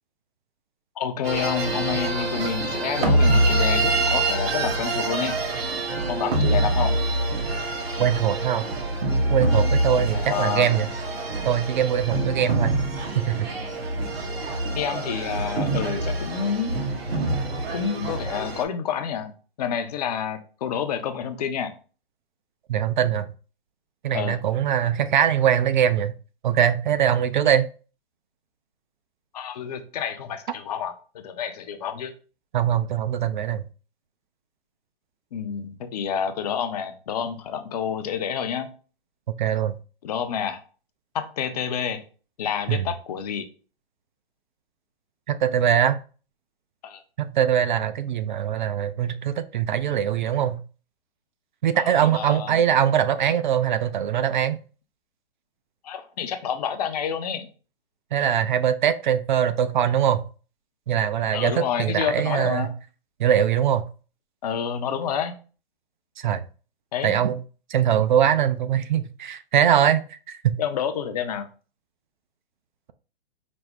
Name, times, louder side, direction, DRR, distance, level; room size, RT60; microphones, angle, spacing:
voice 1, 1.0-5.4 6.1-7.0 9.5-9.7 10.1-10.7 14.8-16.8 17.7-19.3 19.6-21.7 24.1-24.4 29.3-32.1 35.3-38.7 40.0-40.6 41.1-42.0 42.4-43.5 46.8-47.0 51.7-52.6 55.8-57.5 61.3-62.7 64.4-65.3 66.9-67.2 70.6-71.5, left 8 dB, 40° left, 8 dB, 0.6 m, -29 dB
sound 1, 1.2-18.6, right 2 dB, 75° right, 1.1 m, -25 dB
voice 2, 8.0-8.7 9.3-10.9 11.4-12.8 13.2-13.5 22.7-23.3 24.0-26.1 26.4-27.7 32.5-33.6 39.4-39.7 42.7-42.8 45.3-46.0 47.2-50.6 51.6-54.6 58.1-60.2 60.9-62.7 63.2-63.8 66.2-66.4 67.0-67.4 67.7-70.0 70.3-70.5, right 9 dB, 50° right, 11 dB, 0.4 m, -22 dB
5.0 x 2.0 x 3.4 m, 0.37 s
hypercardioid pair, 135°, 30 cm